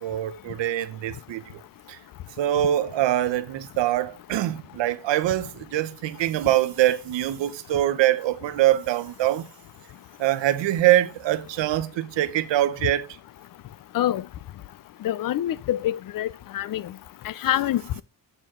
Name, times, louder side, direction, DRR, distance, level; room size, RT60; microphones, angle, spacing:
voice 1, 0.0-1.6 1.9-2.0 2.4-9.5 10.2-13.1, right 13 dB, 80° right, 0.8 m, -24 dB
voice 2, 15.0-16.3 16.5-16.8 17.4-18.0, left 12 dB, 50° left, 0.5 m, -25 dB
7.9 x 4.5 x 3.6 m
cardioid pair, 115°, 44 cm